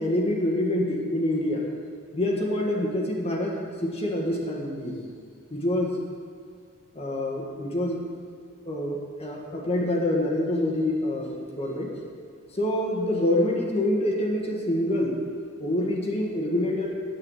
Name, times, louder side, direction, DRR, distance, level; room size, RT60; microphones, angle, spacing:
voice 1, 0.0-1.7 2.1-5.1 5.5-6.0 6.9-8.0 8.7-12.0 12.5-15.2 15.6-17.0, left 1 dB, 30° left, -1 dB, 1.7 m, -26 dB
9.9 x 8.4 x 8.8 m, 2.2 s
head